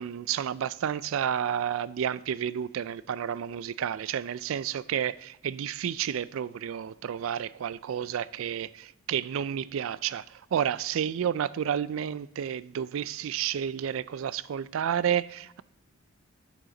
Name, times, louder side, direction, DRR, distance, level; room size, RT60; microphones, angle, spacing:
voice 1, 0.0-15.6, right 9 dB, 70° right, 0.3 m, -31 dB
10.5 x 9.3 x 3.8 m
head